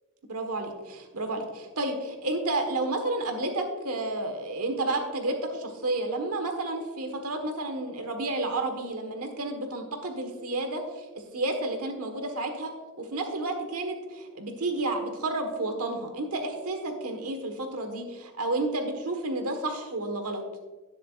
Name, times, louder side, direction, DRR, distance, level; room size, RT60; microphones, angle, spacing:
voice 1, 0.3-11.0 11.3-12.7 13.0-20.4, right 2 dB, 90° right, 4 dB, 1.4 m, -31 dB
18.0 x 6.9 x 2.4 m, 1.2 s
head